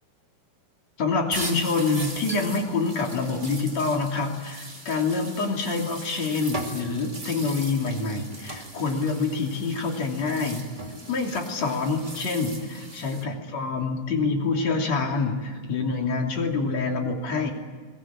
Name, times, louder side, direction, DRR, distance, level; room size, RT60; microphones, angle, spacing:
voice 1, 1.0-10.6 11.1-17.5, left 4 dB, 45° left, 2 dB, 3.8 m, -26 dB
sound 1, 1.3-13.2, right 1 dB, 15° right, 1.9 m, -39 dB
21.5 x 20.0 x 8.8 m, 1.5 s
omnidirectional pair, 4.8 m